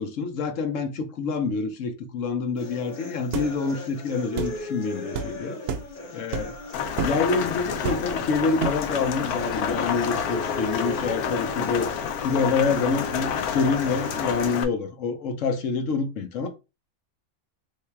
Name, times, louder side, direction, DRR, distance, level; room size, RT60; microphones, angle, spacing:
voice 1, 0.0-5.6 6.1-6.5 7.0-11.9 12.2-16.5, left 4 dB, 65° left, 1.0 m, -27 dB
sound 1, 2.6-14.6, left 2 dB, 40° left, 0.9 m, -38 dB
sound 2, 3.3-3.5 4.4-4.6 5.1-5.3 5.7-5.9 6.3-6.6 7.0-7.2 7.8-8.2 8.6-8.9, right 6 dB, 65° right, 0.8 m, -29 dB
Rain, 6.7-14.6, left 7 dB, 90° left, 1.2 m, -29 dB
3.3 x 2.7 x 4.5 m
omnidirectional pair, 1.5 m